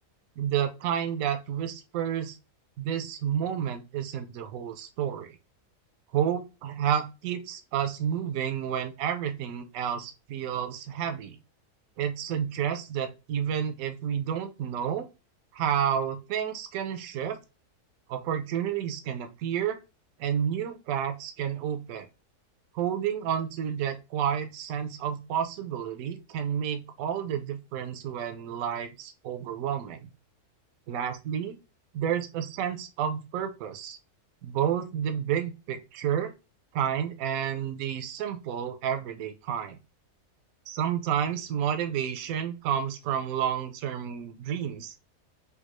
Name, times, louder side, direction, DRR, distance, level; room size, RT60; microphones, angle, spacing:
voice 1, 0.4-2.4 2.8-5.4 6.1-11.4 12.0-15.1 15.5-17.4 18.1-19.8 20.2-22.1 22.7-30.1 30.9-31.6 31.9-34.0 34.4-36.4 36.7-39.8 40.7-44.9, right 9 dB, 70° right, 7 dB, 0.9 m, -30 dB
3.5 x 2.3 x 3.0 m, 0.27 s
omnidirectional pair, 1.6 m